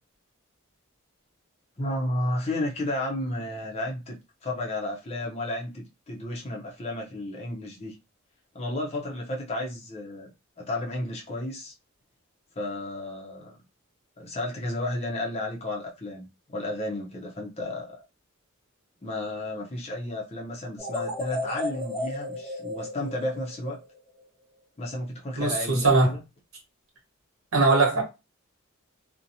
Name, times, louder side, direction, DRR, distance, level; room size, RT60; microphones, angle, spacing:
voice 1, 1.8-8.0 8.5-10.3 10.6-11.7 12.6-13.5 14.2-18.0 19.0-23.8 24.8-26.2, left 1 dB, 30° left, 0.6 m, -32 dB
sound 1, 20.8-24.0, left 1 dB, ahead, 1.1 m, -34 dB
voice 2, 25.4-26.1 27.5-28.0, right 3 dB, 70° right, 1.2 m, -20 dB
2.7 x 2.1 x 2.6 m
head